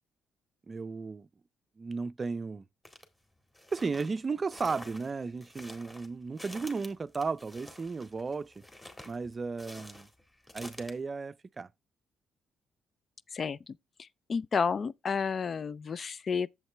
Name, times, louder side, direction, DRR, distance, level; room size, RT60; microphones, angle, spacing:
voice 1, 0.7-1.3 1.8-2.6 3.7-8.6 9.1-10.1 10.5-11.7, right 4 dB, 30° right, 0.4 m, -34 dB
sound 1, 2.9-3.1 3.5-10.9, left 1 dB, 15° left, 1.9 m, -49 dB
voice 2, 13.3-16.5, left 5 dB, 45° left, 0.3 m, -32 dB
7.9 x 7.3 x 3.3 m
cardioid pair, 90°, 0 cm